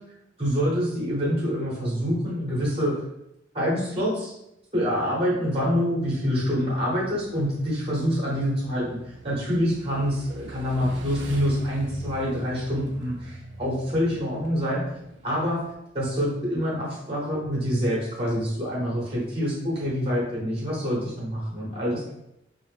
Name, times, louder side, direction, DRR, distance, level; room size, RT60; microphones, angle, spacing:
voice 1, 0.4-2.9 3.5-4.3 4.7-9.0 9.2-14.8 15.2-15.6 15.9-22.0, equal, 30° right, -5 dB, 0.8 m, -26 dB
Motorcycle / Engine, 6.0-15.7, right 2 dB, 75° right, 0.5 m, -43 dB
2.6 x 2.0 x 3.1 m, 0.83 s
head